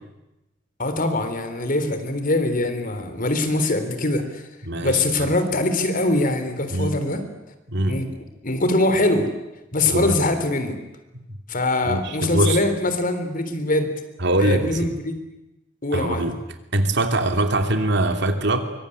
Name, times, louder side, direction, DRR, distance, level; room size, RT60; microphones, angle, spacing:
voice 1, 0.8-4.5 4.8-7.2 7.9-8.1 8.4-9.3 9.7-10.7 11.5-13.9 14.4-15.1 15.8-16.3, left 2 dB, 45° left, 9 dB, 3.6 m, -23 dB
voice 2, 4.7-5.3 6.7-7.0 7.7-8.1 9.9-10.2 11.3-11.4 11.8-12.6 14.2-14.9 15.9-16.3 16.7-18.6, right 1 dB, 65° right, 7 dB, 2.9 m, -22 dB
24.0 x 23.5 x 10.0 m, 0.97 s
head